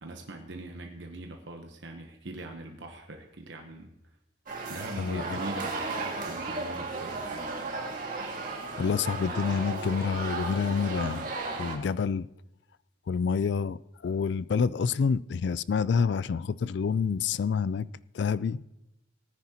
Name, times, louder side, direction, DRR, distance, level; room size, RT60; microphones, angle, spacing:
voice 1, 0.0-3.9 4.7-7.5, right 2 dB, 65° right, 1.0 m, -42 dB
sound 1, 4.5-11.8, right 3 dB, 45° right, 1.9 m, -35 dB
voice 2, 5.0-5.4 8.8-11.3 11.6-12.3 13.1-17.9 18.1-18.6, left 5 dB, 60° left, 0.3 m, -28 dB
19.0 x 9.9 x 2.9 m
head